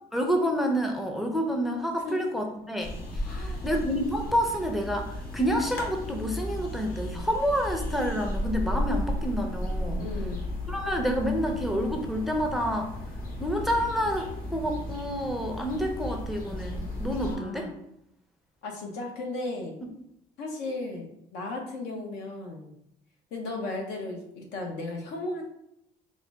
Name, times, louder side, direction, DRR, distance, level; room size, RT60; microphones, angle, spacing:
voice 1, 0.1-10.1 10.7-12.9 13.4-17.7, equal, ahead, 2 dB, 0.4 m, -28 dB
sound 1, 2.8-17.4, left 1 dB, 55° left, 1.0 m, -34 dB
voice 2, 3.2-3.6 10.0-10.4 17.2-17.7 18.6-19.8 20.4-22.7 23.3-25.4, left 2 dB, 85° left, 1 dB, 0.8 m, -35 dB
3.8 x 2.1 x 3.4 m, 0.77 s
cardioid pair, 110°, 17 cm